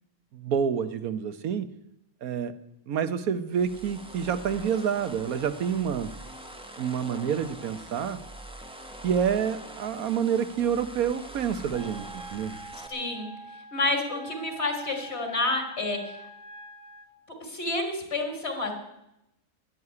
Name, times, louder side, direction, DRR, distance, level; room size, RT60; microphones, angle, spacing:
voice 1, 0.3-1.7 2.2-2.5 2.9-6.1 6.8-8.2 9.0-12.6, right 7 dB, 70° right, 12 dB, 1.4 m, -28 dB
sound 1, 3.5-12.9, right 1 dB, 5° right, 1.1 m, -44 dB
Wind instrument woodwind instrument, 11.7-17.1, right 2 dB, 90° right, 2.2 m, -45 dB
voice 2, 12.9-13.3 13.7-16.2 17.4-18.7, left 2 dB, 45° left, 4 dB, 3.4 m, -29 dB
11.0 x 10.5 x 9.6 m, 0.85 s
omnidirectional pair, 1.6 m